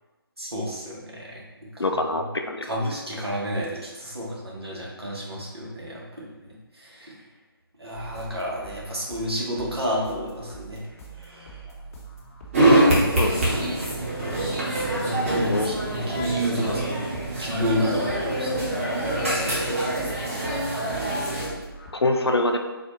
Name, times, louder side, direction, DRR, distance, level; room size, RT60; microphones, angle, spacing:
voice 1, 0.4-1.4 1.7-2.0 2.7-6.3 6.8-7.1 7.8-10.8 11.2-11.5 14.9-17.0 17.4-18.8 19.1-20.1 21.0-21.1, equal, 85° right, -3 dB, 1.1 m, -31 dB
voice 2, 1.8-2.7 13.2-13.5 15.5-15.8 21.9-22.6, left 2 dB, 90° left, 5 dB, 0.5 m, -24 dB
sound 1, 7.9-21.9, right 4 dB, 35° left, 0.8 m, -43 dB
sound 2, 12.5-21.5, right 1 dB, 35° right, 1.1 m, -24 dB
4.0 x 2.3 x 3.0 m, 1.2 s
figure-of-eight pair, 150°, 13 cm